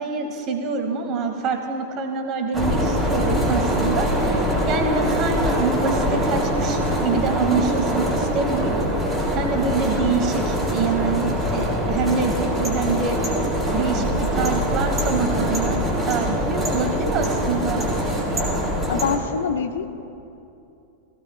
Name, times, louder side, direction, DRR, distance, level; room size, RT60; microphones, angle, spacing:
voice 1, 0.0-13.2 13.7-15.8 16.1-17.9, right 4 dB, 35° right, 4 dB, 1.7 m, -26 dB
sound 1, 2.5-19.2, equal, 10° right, 3.3 m, -23 dB
voice 2, 18.9-19.9, left 7 dB, 60° left, 9 dB, 0.7 m, -25 dB
18.5 x 16.0 x 2.2 m, 2.7 s
figure-of-eight pair, 90°, 0 cm